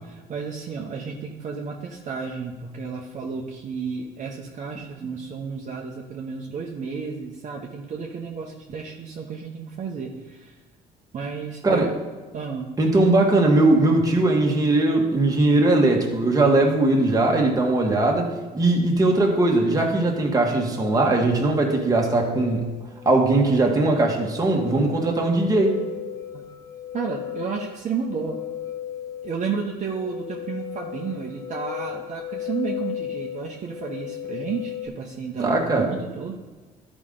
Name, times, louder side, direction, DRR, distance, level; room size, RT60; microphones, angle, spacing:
voice 1, 0.0-10.6 11.1-11.8 12.3-12.7 26.3-26.5 26.9-28.4 29.2-36.3, right 5 dB, 45° right, -1 dB, 0.9 m, -32 dB
voice 2, 12.8-22.7 23.0-25.8 35.4-35.9, right 2 dB, 20° right, 0 dB, 1.5 m, -20 dB
sound 1, 20.7-34.9, left 11 dB, 20° left, 0.6 m, -36 dB
12.0 x 5.0 x 3.8 m, 1.3 s
cardioid pair, 110°, 17 cm